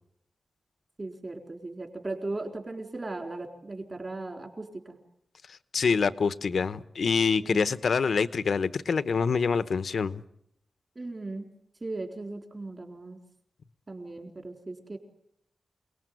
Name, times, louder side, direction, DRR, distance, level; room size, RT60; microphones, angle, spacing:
voice 1, 1.0-5.0 7.4-7.7 11.0-11.5 11.8-13.2 13.9-15.0, right 2 dB, 30° right, 3.8 m, -37 dB
voice 2, 5.5-10.2, left 5 dB, 65° left, 1.0 m, -26 dB
28.5 x 19.5 x 9.3 m
wide cardioid pair, 145°, 0 cm